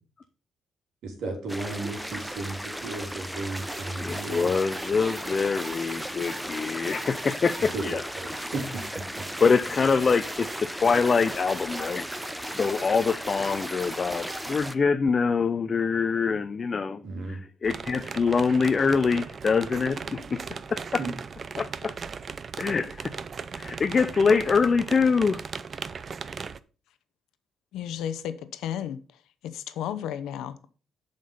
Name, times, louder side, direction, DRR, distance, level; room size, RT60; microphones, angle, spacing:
voice 1, 1.0-4.5 7.7-9.3 17.0-17.4 21.0-21.1, right 2 dB, 75° right, 3.2 m, -35 dB
sound 1, 1.5-14.7, equal, 5° right, 0.7 m, -36 dB
sound 2, 3.5-14.6, right 1 dB, 20° right, 1.7 m, -41 dB
voice 2, 4.0-8.0 9.4-12.1 12.5-17.0 17.6-20.4 20.7-21.0 21.6-21.9 22.6-23.1 23.6-25.4, left 5 dB, 40° left, 0.5 m, -24 dB
sound 3, 17.6-26.6, right 5 dB, 45° right, 0.5 m, -37 dB
voice 3, 27.7-29.0 29.4-30.7, left 10 dB, 85° left, 0.8 m, -33 dB
7.6 x 5.2 x 5.4 m
cardioid pair, 90°, 0 cm